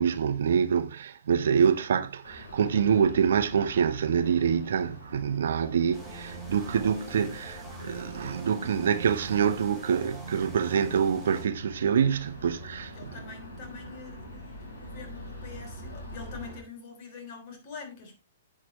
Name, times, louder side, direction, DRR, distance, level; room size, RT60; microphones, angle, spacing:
voice 1, 0.0-13.1, right 7 dB, 60° right, 0.8 m, -26 dB
sound 1, 2.2-16.6, equal, 70° left, 5.2 m, -45 dB
sound 2, 5.9-11.5, right 4 dB, 5° left, 4.4 m, -43 dB
voice 2, 12.6-18.2, left 5 dB, 40° left, 3.3 m, -45 dB
10.5 x 7.9 x 3.0 m
figure-of-eight pair, 115°, 0 cm